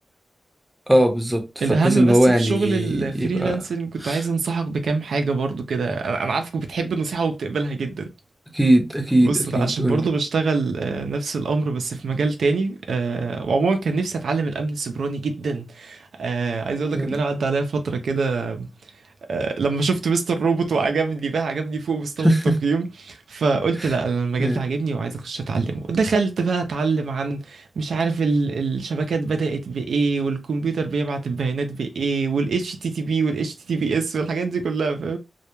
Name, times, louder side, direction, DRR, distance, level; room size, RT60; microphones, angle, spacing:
voice 1, 0.9-3.6 4.0-4.2 8.5-10.0 16.9-17.2 22.2-22.6 23.8-23.9 24.4-24.6, right 1 dB, 10° right, 0.7 m, -20 dB
voice 2, 1.6-8.1 9.2-18.7 19.3-22.3 22.6-35.2, right 4 dB, 85° right, 0.4 m, -24 dB
2.1 x 2.0 x 2.9 m
cardioid pair, 55°, 0 cm